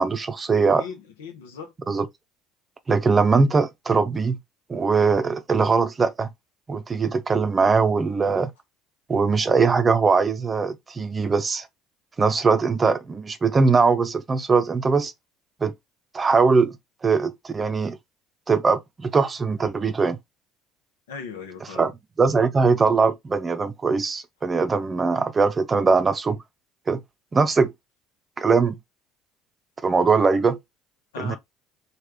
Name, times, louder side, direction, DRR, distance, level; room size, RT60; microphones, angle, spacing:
voice 1, 0.0-0.8 1.9-2.1 2.9-4.4 4.7-6.3 6.7-8.5 9.1-11.7 12.2-15.1 15.6-15.7 16.1-16.8 17.0-18.0 18.5-20.2 21.8-21.9 22.2-26.4 26.9-27.0 27.3-27.7 28.4-28.8 29.8-30.6 31.2-31.4, right 4 dB, 30° right, 0.6 m, -21 dB
voice 2, 0.7-1.7 21.1-21.9 31.1-31.4, left 5 dB, 80° left, 0.7 m, -38 dB
3.2 x 2.4 x 3.5 m
hypercardioid pair, 65°, 0 cm